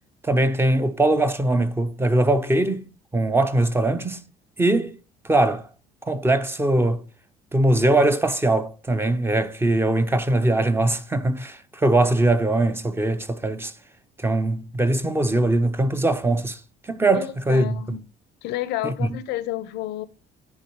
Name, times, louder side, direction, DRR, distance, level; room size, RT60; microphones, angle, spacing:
voice 1, 0.2-2.9 3.1-4.2 4.6-5.0 5.2-5.6 6.1-7.0 7.5-13.7 14.2-16.6 16.9-18.0 18.8-19.2, right 2 dB, 15° right, 0.6 m, -21 dB
voice 2, 17.1-18.0 18.4-20.1, left 13 dB, 85° left, 0.6 m, -30 dB
9.8 x 3.9 x 4.6 m
cardioid pair, 110°, 17 cm